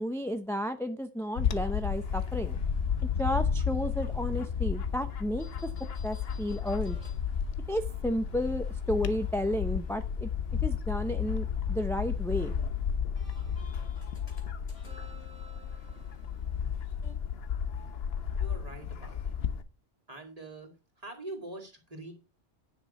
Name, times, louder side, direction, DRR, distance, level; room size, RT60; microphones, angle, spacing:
voice 1, 0.0-2.6 3.2-5.5 6.0-7.0 7.7-10.3 10.6-12.5, equal, 5° left, 8 dB, 0.5 m, -32 dB
Bird / Wind, 1.4-19.6, left 7 dB, 60° left, 1.1 m, -32 dB
sound 1, 1.8-17.1, left 2 dB, 85° left, 3.3 m, -58 dB
voice 2, 18.3-19.2 20.1-20.7 21.0-22.1, right 2 dB, 30° right, 3 dB, 2.5 m, -43 dB
10.5 x 6.1 x 5.4 m, 0.31 s
omnidirectional pair, 1.2 m